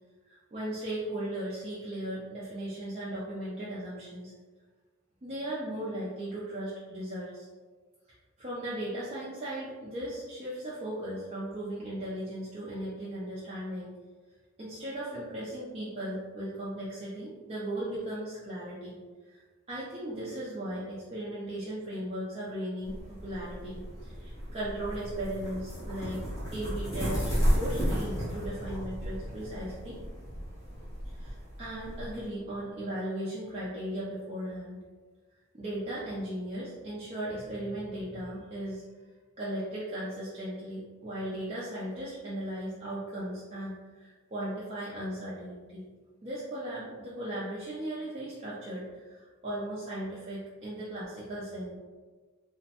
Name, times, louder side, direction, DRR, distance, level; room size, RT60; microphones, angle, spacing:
voice 1, 0.3-4.3 5.2-7.5 8.4-13.9 14.6-19.0 19.2-26.2 26.5-27.2 27.5-30.0 31.0-34.8 35.5-38.8 39.4-45.9 46.2-51.8, right 1 dB, 30° right, -8 dB, 0.4 m, -37 dB
sound 1, 22.8-32.3, equal, 15° left, 0.9 m, -33 dB
2.9 x 2.1 x 2.8 m, 1.4 s
head